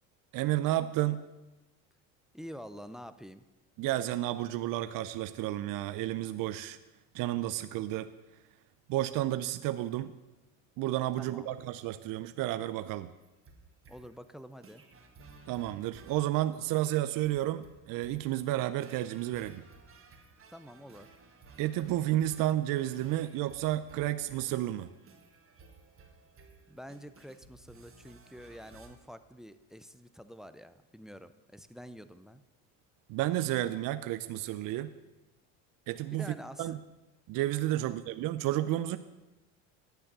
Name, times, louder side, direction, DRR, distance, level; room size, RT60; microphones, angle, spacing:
voice 1, 0.3-1.2 3.8-6.8 7.1-8.1 8.9-10.1 10.8-13.1 15.5-19.6 21.6-24.9 33.1-34.9 35.9-36.3 36.6-36.8 37.3-39.0, right 14 dB, 55° right, 12 dB, 0.5 m, -31 dB
voice 2, 2.3-3.5 11.2-11.5 13.9-14.8 20.5-21.1 26.7-32.4 36.1-36.8 37.8-38.0, equal, ahead, 13 dB, 0.4 m, -47 dB
sound 1, 13.2-28.9, right 4 dB, 30° right, 1.7 m, -57 dB
10.5 x 6.9 x 6.7 m, 1.1 s
supercardioid pair, 95°, 41 cm